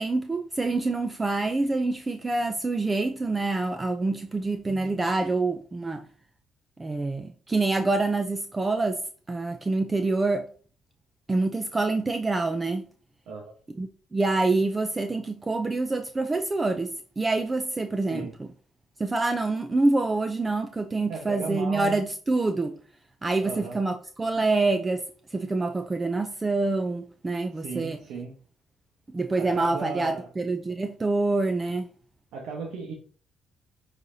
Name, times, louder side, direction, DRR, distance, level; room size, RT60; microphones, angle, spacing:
voice 1, 0.0-6.1 6.8-9.0 9.3-10.5 11.3-12.8 13.8-18.5 19.0-22.8 23.2-25.0 25.3-28.0 29.1-31.9, right 3 dB, 20° right, 0.5 m, -26 dB
voice 2, 21.1-22.0 23.4-23.8 27.6-28.3 29.4-30.3 32.3-32.9, right 5 dB, 85° right, 1.2 m, -35 dB
10.0 x 4.1 x 2.8 m
cardioid pair, 100°, 0 cm